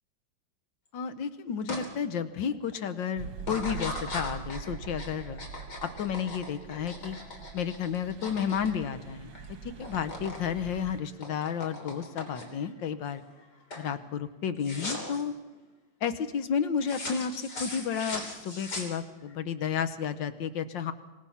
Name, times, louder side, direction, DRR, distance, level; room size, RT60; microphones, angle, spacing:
voice 1, 0.9-5.4 5.8-7.2 7.5-9.3 9.6-13.2 13.8-15.3 16.0-20.9, left 7 dB, 75° left, 11 dB, 1.7 m, -32 dB
sound 1, 1.7-1.9 2.3-2.7 3.4-9.5 9.7-10.4 10.7-12.7 13.2-13.5 13.7-13.9 14.6-15.2 16.8-19.3, left 2 dB, 60° left, 4.1 m, -39 dB
sound 2, 3.2-11.0, right 6 dB, 85° right, 1.9 m, -44 dB
26.0 x 18.5 x 5.8 m, 1.1 s
omnidirectional pair, 2.0 m